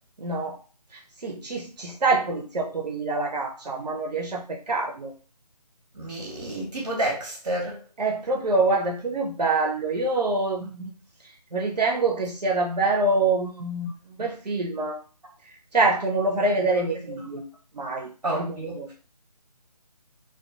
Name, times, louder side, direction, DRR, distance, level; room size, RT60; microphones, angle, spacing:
voice 1, 0.2-0.6 0.9-5.1 8.0-10.9 11.5-15.0 15.7-17.4 17.7-18.9, right 3 dB, 85° right, 0 dB, 0.5 m, -26 dB
voice 2, 6.0-7.8 16.7-17.1 18.2-18.9, right 1 dB, 55° right, -2 dB, 0.8 m, -30 dB
2.4 x 2.3 x 2.3 m, 0.38 s
figure-of-eight pair, 150°, 20 cm